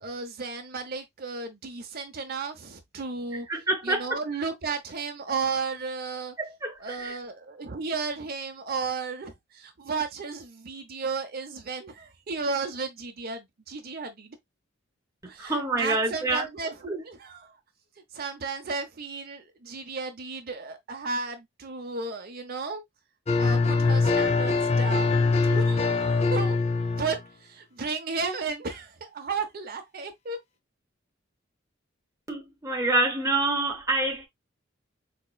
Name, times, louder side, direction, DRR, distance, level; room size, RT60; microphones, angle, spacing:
voice 1, 0.0-3.5 3.8-6.3 6.8-14.4 15.3-17.5 18.1-22.8 23.4-26.6 27.0-30.4, right 4 dB, 50° right, 0.7 m, -34 dB
voice 2, 3.5-4.2 6.4-7.2 15.4-16.5 16.9-17.0 32.3-34.3, right 2 dB, 15° right, 0.7 m, -27 dB
sound 1, 23.3-27.2, left 4 dB, 35° left, 0.5 m, -23 dB
4.2 x 2.9 x 2.2 m
head